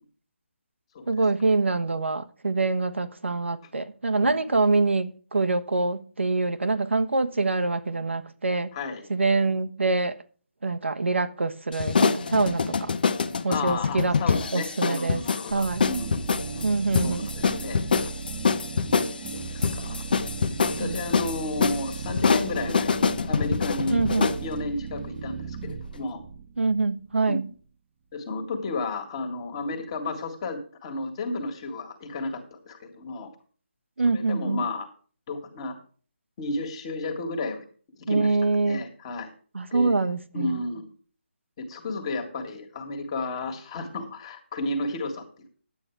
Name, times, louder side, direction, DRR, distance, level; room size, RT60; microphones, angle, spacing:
voice 1, 1.1-8.7 9.1-10.2 10.6-12.9 13.4-14.1 14.5-15.2 15.5-15.9 16.6-17.3 20.8-21.0 23.9-24.3 26.6-27.5 34.0-34.6 38.1-38.8 39.5-40.6, right 3 dB, 85° right, 1.3 m, -25 dB
voice 2, 8.7-9.1 13.5-16.7 17.0-17.8 19.3-20.0 20.8-26.2 27.3-27.5 28.1-33.3 34.1-34.9 35.3-35.8 36.4-37.6 38.1-39.3 39.7-40.1 40.3-40.9 41.6-45.2, left 2 dB, 25° left, 1.9 m, -33 dB
sound 1, 11.7-24.4, left 5 dB, 50° left, 0.9 m, -26 dB
sound 2, 15.5-27.3, right 6 dB, 25° right, 0.8 m, -37 dB
10.5 x 8.6 x 4.7 m
figure-of-eight pair, 165°, 6 cm